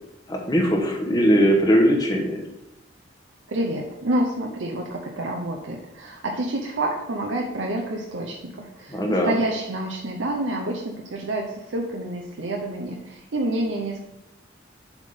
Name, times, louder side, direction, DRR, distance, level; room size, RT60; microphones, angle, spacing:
voice 1, 0.3-2.4 8.9-9.3, equal, 20° left, 0 dB, 1.1 m, -20 dB
voice 2, 3.5-14.0, right 1 dB, 80° right, 1 dB, 0.7 m, -28 dB
7.2 x 3.6 x 5.3 m, 0.87 s
head